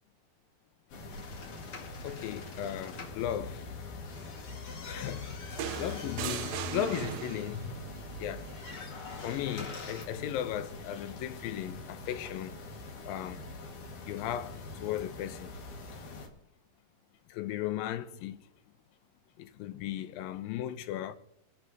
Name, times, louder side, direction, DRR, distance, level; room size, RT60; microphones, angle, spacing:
sound 1, 0.9-16.3, left 3 dB, 65° left, 3.2 m, -44 dB
sound 2, 1.1-3.2 3.9-10.0, left 4 dB, 45° left, 2.3 m, -46 dB
voice 1, 2.0-3.6 4.8-5.4 5.8-7.7 8.2-8.5 9.2-12.5 13.1-13.4 14.1-15.5 17.3-18.4 19.4-21.2, left 11 dB, 85° left, 2.5 m, -36 dB
sound 3, 5.6-7.7 9.1-9.3, right 12 dB, 85° right, 1.7 m, -38 dB
24.5 x 12.5 x 2.8 m
omnidirectional pair, 4.0 m